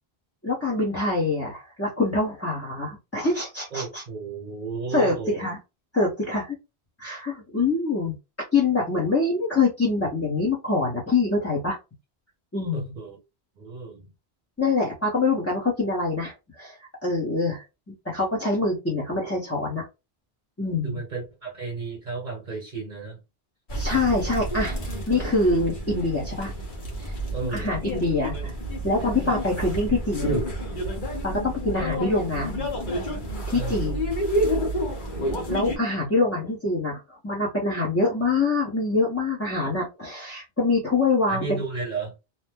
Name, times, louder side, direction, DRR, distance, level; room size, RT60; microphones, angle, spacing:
voice 1, 0.4-4.0 4.9-5.6 5.9-6.6 7.0-8.1 8.5-11.8 12.5-12.9 14.6-19.9 20.6-21.0 23.8-24.8 25.1-26.5 27.0-27.1 27.5-28.5 28.8-30.4 31.2-32.6 33.5-34.0 35.5-41.6, left 3 dB, 15° left, 0.7 m, -25 dB
voice 2, 3.7-5.5 12.7-13.2 13.6-14.1 20.8-23.2 27.3-27.7 33.5-33.8 41.3-42.1, right 4 dB, 50° right, 1.0 m, -33 dB
sound 1, 23.7-35.8, equal, 50° left, 1.2 m, -29 dB
2.8 x 2.0 x 3.4 m
omnidirectional pair, 1.1 m